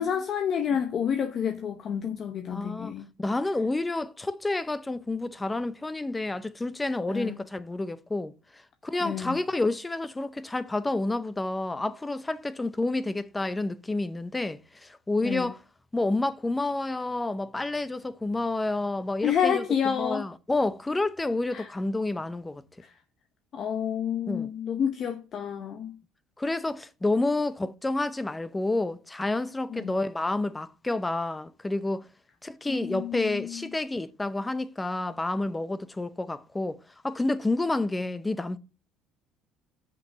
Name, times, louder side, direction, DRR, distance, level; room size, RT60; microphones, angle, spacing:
voice 1, 0.0-3.1 7.1-7.4 9.0-9.4 15.2-15.5 19.2-20.3 21.5-21.7 22.8-22.9 23.5-25.9 29.7-29.9 32.7-33.7, left 8 dB, 45° left, 0.8 m, -29 dB
voice 2, 2.5-2.9 3.2-8.3 8.8-15.6 15.9-19.6 20.0-22.6 24.3-24.5 26.4-32.0 32.4-36.8 37.0-38.6, left 2 dB, 10° left, 0.6 m, -29 dB
6.6 x 5.4 x 6.2 m
cardioid pair, 120°, 0 cm